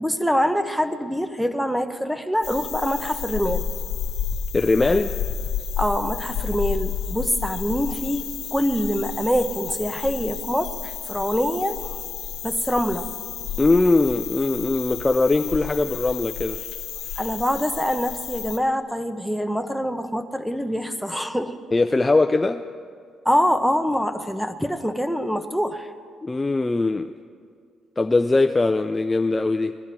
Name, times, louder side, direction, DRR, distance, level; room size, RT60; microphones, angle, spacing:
voice 1, 0.0-3.7 5.8-12.0 12.4-13.1 17.2-21.6 23.2-25.9, equal, ahead, 7 dB, 0.8 m, -25 dB
sound 1, 2.4-18.6, left 8 dB, 80° left, 0.7 m, -31 dB
voice 2, 4.5-5.1 13.6-16.6 21.7-22.6 26.2-27.1 28.0-29.8, left 3 dB, 20° left, 6 dB, 0.4 m, -21 dB
19.5 x 11.5 x 4.5 m, 2.1 s
cardioid pair, 90°, 0 cm